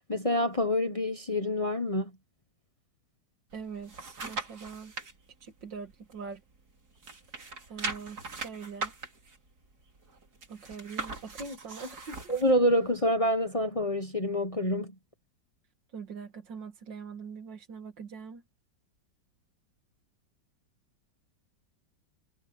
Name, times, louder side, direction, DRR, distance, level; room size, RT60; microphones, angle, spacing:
voice 1, 0.1-2.1 12.3-14.9, left 1 dB, 20° left, 1.2 m, -27 dB
sound 1, 3.5-5.1 5.6-6.7 7.0-12.5 13.0-13.1, right 4 dB, 55° right, 3.7 m, -40 dB
voice 2, 3.5-4.9 5.4-6.4 7.7-8.9 10.5-12.2 15.9-18.4, right 5 dB, 75° right, 2.7 m, -42 dB
omnidirectional pair, 2.0 m